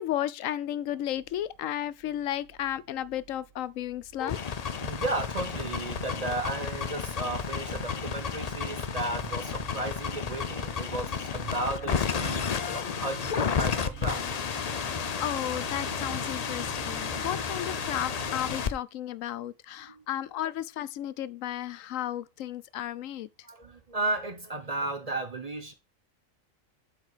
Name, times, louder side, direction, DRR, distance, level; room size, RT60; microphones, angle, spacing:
voice 1, 0.0-4.4 12.5-12.9 14.9-23.3, left 12 dB, 80° left, 1.0 m, -34 dB
sound 1, 0.9-18.7, right 10 dB, 80° right, 1.1 m, -48 dB
sound 2, 4.2-18.7, left 6 dB, 45° left, 0.5 m, -32 dB
voice 2, 4.7-14.2 19.9-20.0 23.4-25.7, right 2 dB, 30° right, 1.0 m, -34 dB
8.0 x 4.9 x 4.8 m
omnidirectional pair, 1.4 m